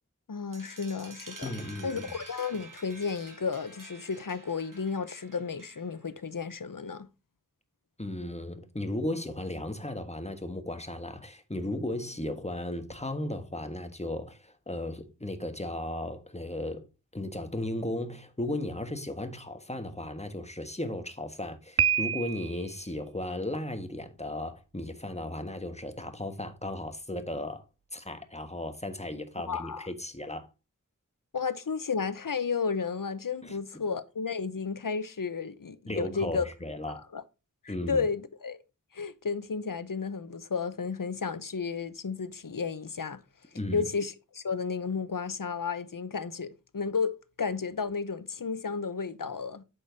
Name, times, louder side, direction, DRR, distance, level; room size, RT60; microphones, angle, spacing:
voice 1, 0.3-1.5 1.8-7.1 29.5-29.9 31.3-36.5 36.9-37.2 37.6-38.6 38.9-43.2 43.7-47.1 47.4-49.6, left 5 dB, 80° left, 0.9 m, -33 dB
sound 1, 0.5-6.1, right 2 dB, 75° right, 1.6 m, -49 dB
voice 2, 1.4-2.1 8.0-16.9 17.1-27.6 27.9-30.5 33.4-33.8 35.9-37.1 37.7-38.1 43.5-43.9, left 1 dB, 20° left, 1.4 m, -35 dB
Piano, 21.8-22.7, right 7 dB, 45° right, 0.4 m, -27 dB
8.4 x 7.1 x 2.7 m
wide cardioid pair, 50°, 32 cm